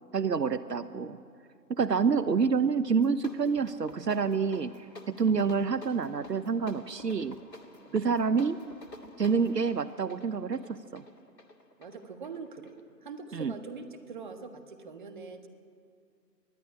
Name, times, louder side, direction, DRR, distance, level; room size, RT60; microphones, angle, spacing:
voice 1, 0.1-1.2 1.7-4.7 5.1-7.4 7.9-8.6 9.2-11.0 13.3-13.5, right 5 dB, 70° right, 14 dB, 0.9 m, -27 dB
sound 1, 2.9-13.2, left 2 dB, 75° left, 2.5 m, -51 dB
voice 2, 11.8-12.7 13.0-15.5, right 4 dB, 30° right, 7 dB, 1.5 m, -43 dB
21.5 x 13.0 x 9.8 m, 2.3 s
figure-of-eight pair, 150°, 50 cm